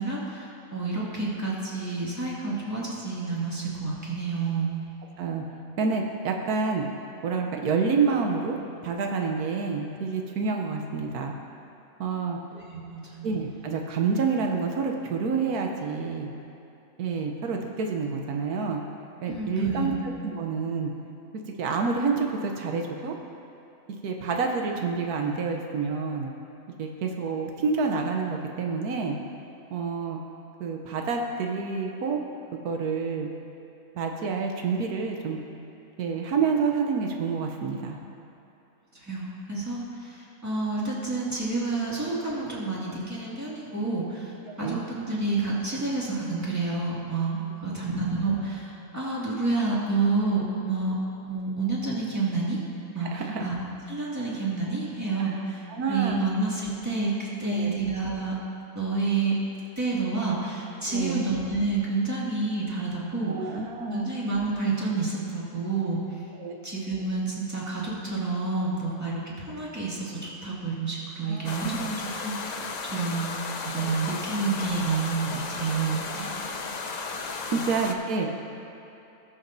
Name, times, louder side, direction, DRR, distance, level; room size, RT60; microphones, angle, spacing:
voice 1, 0.0-4.7 12.5-13.3 19.3-20.0 38.9-51.0 51.2-52.6 52.9-53.6 53.9-58.4 58.7-59.4 59.8-63.6 63.9-66.0 66.6-71.8 72.2-76.4 77.5-77.6, right 3 dB, 10° right, -7 dB, 2.0 m, -29 dB
voice 2, 5.8-6.9 7.2-8.6 8.8-11.3 12.0-12.4 13.2-16.3 17.0-18.8 19.2-20.9 21.6-23.2 24.0-26.3 26.8-29.2 29.7-30.2 30.6-32.2 32.5-33.3 33.9-35.4 36.0-38.0 44.5-44.8 53.1-53.4 55.2-55.4 55.7-56.3 57.4-57.8 60.9-61.3 63.3-64.1 66.3-66.6 71.2-72.1 76.2-76.3 77.5-78.3, right 5 dB, 85° right, 2 dB, 1.3 m, -28 dB
sound 1, 71.4-77.9, left 4 dB, 85° left, 0.3 m, -34 dB
19.0 x 7.0 x 2.7 m, 2.8 s
omnidirectional pair, 1.6 m